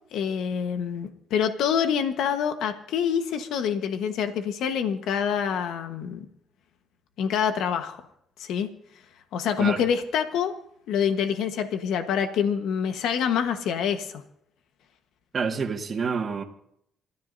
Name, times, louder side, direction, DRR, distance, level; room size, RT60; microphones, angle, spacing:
voice 1, 0.1-6.3 7.2-8.0 8.4-8.7 9.3-10.6 10.9-14.2, left 8 dB, 85° left, 7 dB, 1.3 m, -26 dB
voice 2, 15.3-16.4, right 5 dB, 45° right, 0 dB, 1.8 m, -28 dB
29.0 x 13.5 x 2.7 m, 0.71 s
cardioid pair, 90°, 0 cm